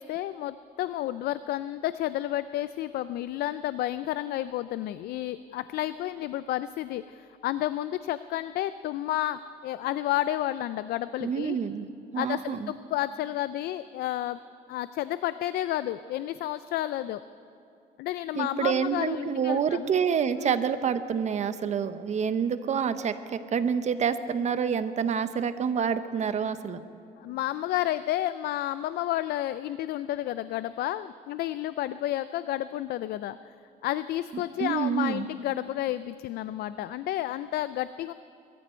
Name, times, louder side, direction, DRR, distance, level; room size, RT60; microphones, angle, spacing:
voice 1, 0.0-11.6 12.2-14.4 14.7-17.2 18.0-19.9 20.4-20.6 27.2-33.4 33.8-38.1, left 13 dB, 70° left, 14 dB, 0.4 m, -31 dB
voice 2, 11.2-11.9 12.1-12.7 18.3-26.8 34.6-35.3, right 7 dB, 45° right, 11 dB, 0.9 m, -27 dB
22.5 x 14.0 x 4.4 m, 2.7 s
cardioid pair, 110°, 17 cm